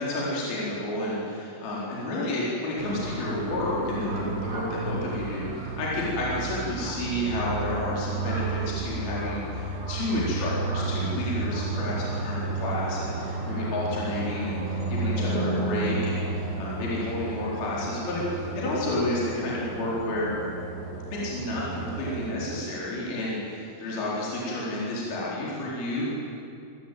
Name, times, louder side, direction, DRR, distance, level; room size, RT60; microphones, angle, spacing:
voice 1, 0.0-20.3 21.1-26.1, left 1 dB, 50° left, -6 dB, 5.9 m, -30 dB
sound 1, 2.8-22.3, right 3 dB, 55° right, 7.0 m, -32 dB
28.0 x 16.0 x 9.2 m, 2.5 s
omnidirectional pair, 5.8 m